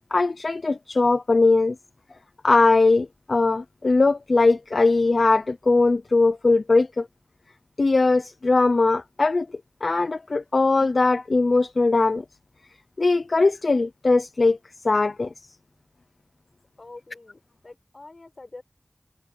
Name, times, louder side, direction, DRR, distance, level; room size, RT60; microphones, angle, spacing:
voice 1, 0.1-1.7 2.4-7.1 7.8-9.5 9.8-12.2 13.0-14.6 14.8-15.3, left 3 dB, 85° left, 0.7 m, -20 dB
voice 2, 16.8-18.6, left 2 dB, 70° left, 6.9 m, -45 dB
wide cardioid pair, 40°, 0 cm